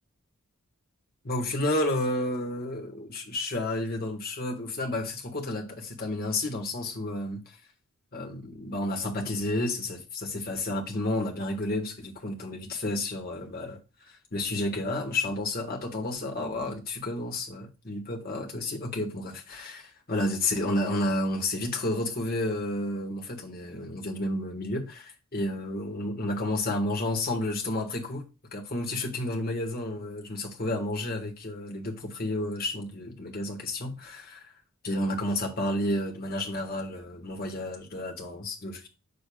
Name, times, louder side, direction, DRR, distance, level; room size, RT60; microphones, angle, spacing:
voice 1, 1.2-7.6 8.1-13.8 14.1-34.5 34.8-38.9, left 1 dB, 45° left, 1.6 m, -31 dB
7.7 x 6.7 x 2.4 m
head